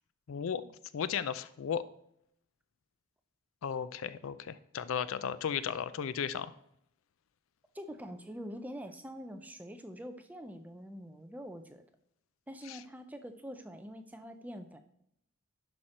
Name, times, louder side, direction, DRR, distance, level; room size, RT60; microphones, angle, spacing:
voice 1, 0.3-1.8 3.6-6.5 12.6-12.8, left 7 dB, 70° left, 16 dB, 0.4 m, -35 dB
voice 2, 7.7-11.8 12.5-14.8, equal, 5° right, 8 dB, 0.4 m, -45 dB
11.0 x 4.4 x 4.3 m, 0.76 s
head